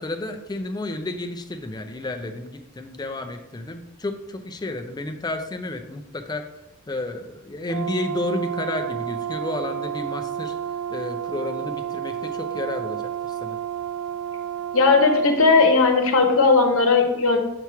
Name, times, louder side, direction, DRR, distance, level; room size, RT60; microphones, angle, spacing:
voice 1, 0.0-6.5 6.9-10.5 10.9-13.6, left 2 dB, 20° left, 5 dB, 0.4 m, -31 dB
Brass instrument, 7.7-15.4, right 10 dB, 80° right, 0.3 m, -31 dB
voice 2, 14.7-17.4, left 4 dB, 65° left, 3 dB, 0.9 m, -17 dB
6.9 x 3.0 x 4.6 m, 0.90 s
head